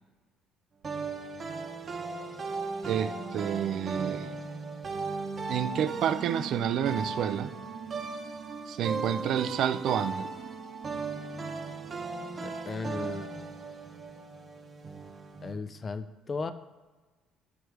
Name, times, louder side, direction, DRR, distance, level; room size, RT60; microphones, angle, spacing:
sound 1, 0.8-15.5, right 4 dB, 35° right, 0.9 m, -37 dB
voice 1, 2.9-4.4 5.5-7.5 8.7-10.3, right 9 dB, 65° right, 11 dB, 0.4 m, -29 dB
voice 2, 12.4-13.3 15.4-16.5, left 4 dB, 30° left, 12 dB, 0.4 m, -36 dB
8.0 x 3.3 x 4.6 m, 1.3 s
cardioid pair, 100°, 0 cm